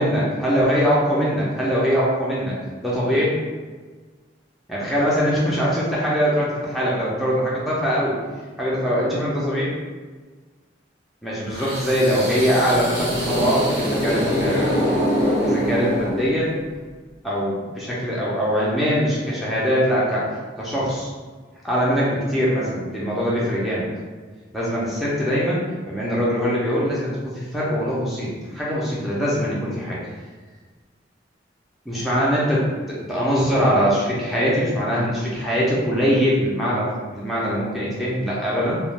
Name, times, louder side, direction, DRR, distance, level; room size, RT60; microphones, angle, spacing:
voice 1, 0.0-2.6 2.8-3.3 4.7-8.2 8.6-9.7 11.2-14.8 15.4-16.5 17.2-20.2 20.6-21.1 21.6-23.9 24.5-25.6 25.9-30.0 31.9-38.8, equal, ahead, -8 dB, 0.5 m, -22 dB
sound 1, 11.5-16.6, equal, 60° right, 0.9 m, -24 dB
2.4 x 2.1 x 3.1 m, 1.4 s
head